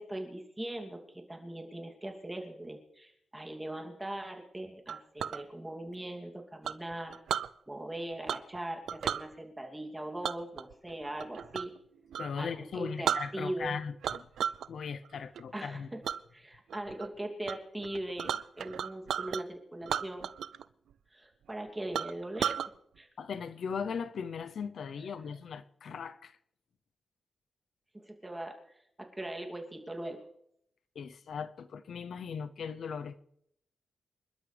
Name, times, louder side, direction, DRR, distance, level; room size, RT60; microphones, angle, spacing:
voice 1, 0.0-7.2 7.7-11.7 12.4-13.8 15.5-16.0 16.3-20.3 21.1-22.6 23.0-23.1 27.9-28.5 29.2-30.2, right 1 dB, 15° right, 2.8 m, -40 dB
Chink clink, 4.9-5.4 6.6-7.5 8.3-8.6 8.9-9.2 10.2-11.8 12.1-12.3 12.7-12.8 13.0-13.7 14.0-14.7 15.1-15.4 16.0-16.2 16.7-17.1 17.5-17.6 17.8-19.4 19.8-20.6 20.9-21.0 21.5-21.6 21.9-22.7, right 8 dB, 85° right, 0.4 m, -34 dB
voice 2, 12.2-14.3 14.7-15.9 23.2-26.3 30.9-33.2, left 6 dB, 75° left, 0.7 m, -38 dB
26.5 x 12.0 x 3.4 m
cardioid pair, 80°, 0 cm